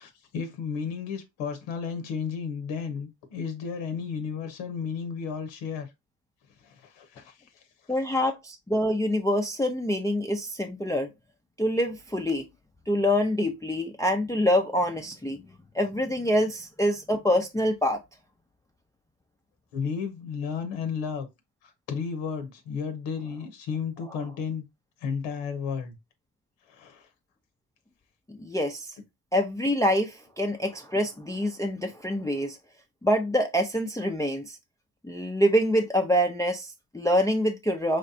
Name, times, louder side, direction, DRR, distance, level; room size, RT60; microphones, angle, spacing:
voice 1, 0.0-5.9 6.6-7.6 19.7-21.3 21.6-24.6 25.0-26.0 26.7-27.1, left 6 dB, 90° left, 0.9 m, -33 dB
voice 2, 7.9-11.1 11.6-12.4 12.9-15.4 15.7-18.0 28.3-28.9 29.3-32.6 33.0-34.5 35.0-38.0, equal, 10° left, 0.5 m, -25 dB
3.9 x 3.3 x 2.7 m
cardioid pair, 85°, 44 cm